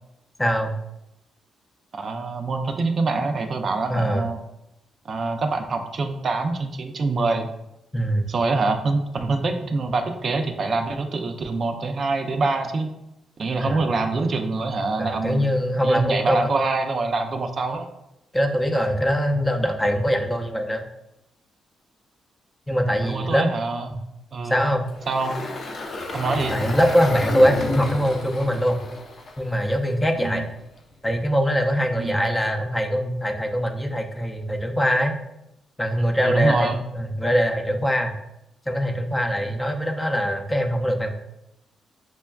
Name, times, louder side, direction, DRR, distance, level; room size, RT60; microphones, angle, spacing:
voice 1, 0.4-0.7 3.9-4.3 7.9-8.2 13.6-14.0 15.0-16.5 18.3-20.9 22.7-23.5 24.4-24.9 26.5-28.8 29.4-30.5 31.0-35.2 35.8-36.7 36.9-38.1 38.7-41.1, equal, 15° left, 2 dB, 0.5 m, -22 dB
voice 2, 1.9-4.4 5.0-7.5 8.3-12.9 13.4-15.5 15.8-17.9 23.0-24.0 24.3-24.6 25.1-25.4 26.1-26.6 30.2-30.5 32.0-32.2 36.2-36.8, right 3 dB, 50° right, 5 dB, 0.4 m, -25 dB
Engine, 24.9-30.2, left 3 dB, 60° left, 0.6 m, -32 dB
5.9 x 2.2 x 2.3 m, 0.86 s
cardioid pair, 75°, 0 cm